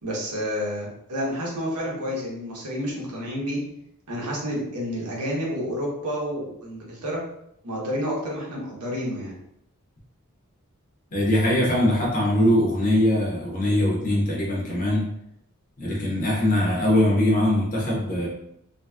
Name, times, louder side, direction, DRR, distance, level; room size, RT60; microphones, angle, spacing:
voice 1, 0.0-3.6 4.1-7.2 7.6-9.3, equal, 90° right, -3 dB, 1.0 m, -29 dB
voice 2, 11.1-15.1 15.8-18.3, left 1 dB, 35° left, -4 dB, 0.9 m, -22 dB
2.8 x 2.8 x 2.3 m, 0.75 s
head